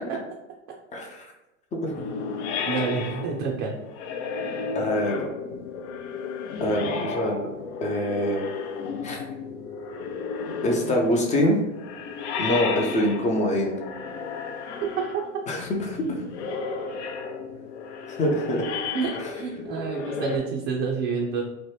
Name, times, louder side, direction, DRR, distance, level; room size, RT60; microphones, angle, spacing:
voice 1, 0.9-1.3 1.7-1.9 4.7-5.3 6.6-7.4 7.8-8.5 9.0-9.2 10.6-11.6 12.4-13.8 15.5-16.0 18.1-18.7 19.2-19.3, left 1 dB, 20° left, 1 dB, 0.4 m, -25 dB
sound 1, 1.9-20.4, left 5 dB, 65° left, 0.6 m, -33 dB
voice 2, 2.7-3.7 15.0-15.1 18.9-21.4, right 5 dB, 35° right, -1 dB, 0.5 m, -28 dB
3.1 x 2.0 x 3.2 m, 1.0 s
hypercardioid pair, 100°, 38 cm